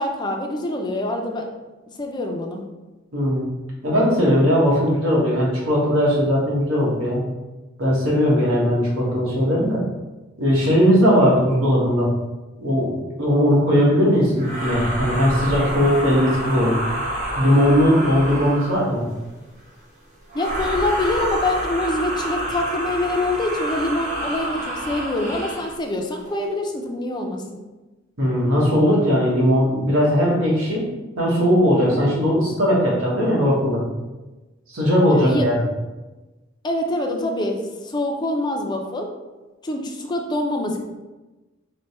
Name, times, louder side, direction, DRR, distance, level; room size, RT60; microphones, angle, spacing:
voice 1, 0.0-1.5 2.0-2.6 20.3-27.4 35.0-35.5 36.6-39.1 39.6-40.8, left 1 dB, 20° left, 2 dB, 0.4 m, -25 dB
voice 2, 3.1-3.4 3.8-7.2 7.8-9.8 10.4-12.1 12.6-16.8 17.3-19.0 28.2-30.8 31.2-33.8 34.7-35.6, equal, 80° right, -4 dB, 1.2 m, -18 dB
sound 1, 14.4-18.9 20.3-25.8, right 1 dB, 40° right, 0.8 m, -28 dB
3.3 x 2.2 x 4.1 m, 1.1 s
head